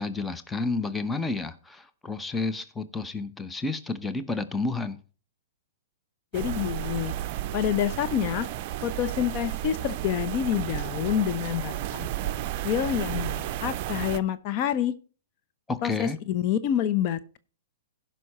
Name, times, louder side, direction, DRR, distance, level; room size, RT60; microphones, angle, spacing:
voice 1, 0.0-5.0 15.7-16.2, left 3 dB, 10° left, 0.8 m, -30 dB
voice 2, 6.3-7.1 7.5-8.5 8.8-14.9 15.8-17.4, left 10 dB, 45° left, 0.8 m, -28 dB
sound 1, 6.3-14.2, right 13 dB, 45° right, 0.5 m, -32 dB
15.5 x 5.6 x 4.2 m
hypercardioid pair, 120°, 0 cm